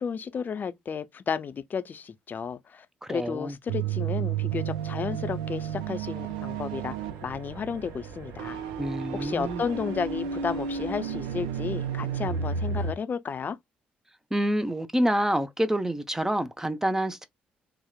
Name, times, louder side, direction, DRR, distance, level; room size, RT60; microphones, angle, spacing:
voice 1, 0.0-7.0 7.2-8.6 9.1-13.6, left 6 dB, 45° left, 0.4 m, -33 dB
voice 2, 3.0-3.5 8.8-9.6 14.3-17.3, right 1 dB, 10° right, 0.5 m, -27 dB
sound 1, 3.7-12.9, right 7 dB, 90° right, 0.3 m, -32 dB
sound 2, 4.5-12.9, right 3 dB, 65° right, 1.0 m, -49 dB
2.8 x 2.0 x 2.2 m
hypercardioid pair, 50°, 4 cm